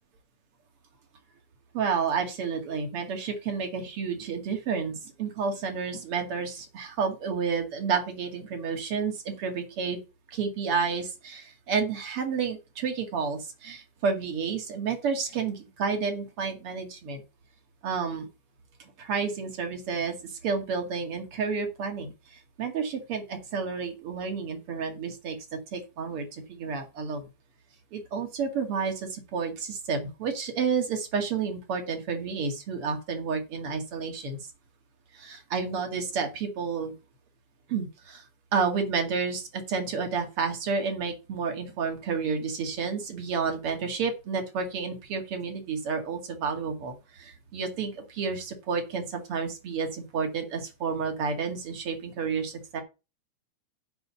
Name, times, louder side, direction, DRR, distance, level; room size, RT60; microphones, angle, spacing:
voice 1, 1.7-10.0 10.3-17.2 17.8-18.3 19.0-20.1 20.4-22.1 22.6-27.2 27.9-34.4 35.1-36.9 37.7-38.2 38.5-52.8, right 5 dB, 45° right, 5 dB, 2.9 m, -30 dB
8.1 x 5.5 x 7.0 m, 0.28 s
omnidirectional pair, 3.6 m